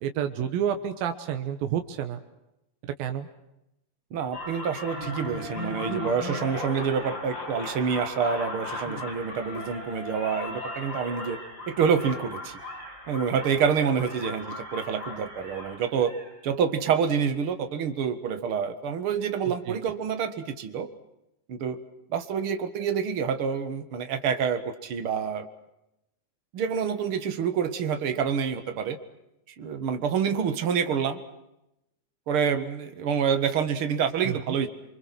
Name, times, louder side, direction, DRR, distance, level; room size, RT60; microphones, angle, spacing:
voice 1, 0.0-2.2 3.0-3.3 19.7-19.8 34.3-34.4, right 9 dB, 80° right, 7 dB, 3.0 m, -29 dB
voice 2, 4.1-11.4 11.7-12.6 13.1-16.1 16.4-20.9 21.5-21.8 22.1-25.5 26.5-29.0 29.5-31.2 32.3-34.7, right 7 dB, 45° right, 9 dB, 2.0 m, -27 dB
sound 1, 4.3-16.3, left 1 dB, 30° left, 7.4 m, -37 dB
27.5 x 24.5 x 6.1 m, 0.86 s
omnidirectional pair, 4.1 m